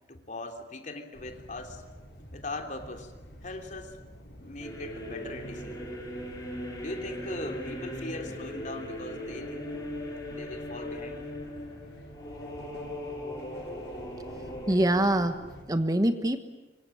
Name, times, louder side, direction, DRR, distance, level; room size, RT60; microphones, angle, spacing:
voice 1, 0.1-1.8 2.3-3.1 3.4-4.0 4.3-5.9 6.8-9.7 10.3-11.3, left 2 dB, 45° left, 5 dB, 3.3 m, -40 dB
sound 1, 1.1-15.6, equal, 65° left, 7.1 m, -49 dB
sound 2, 4.6-15.1, equal, 20° left, 7.1 m, -39 dB
voice 2, 14.5-16.4, right 1 dB, 20° right, 9 dB, 1.2 m, -25 dB
25.5 x 25.0 x 9.2 m, 1.1 s
head